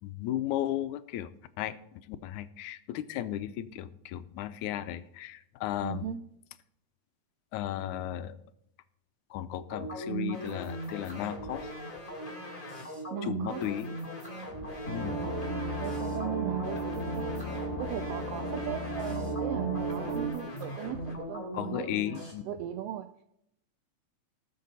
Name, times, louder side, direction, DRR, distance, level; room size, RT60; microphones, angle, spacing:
voice 1, 0.0-1.3 1.6-6.0 7.5-8.4 9.3-11.7 13.2-13.9 14.9-15.2 21.6-22.5, left 12 dB, 90° left, 2.1 m, -35 dB
voice 2, 5.8-6.2 13.1-13.7 15.0-23.1, right 11 dB, 85° right, 1.4 m, -39 dB
sound 1, 9.7-22.3, right 2 dB, 15° left, 2.9 m, -39 dB
sound 2, 14.8-20.3, right 2 dB, 35° left, 3.6 m, -34 dB
19.5 x 6.7 x 4.1 m
omnidirectional pair, 3.3 m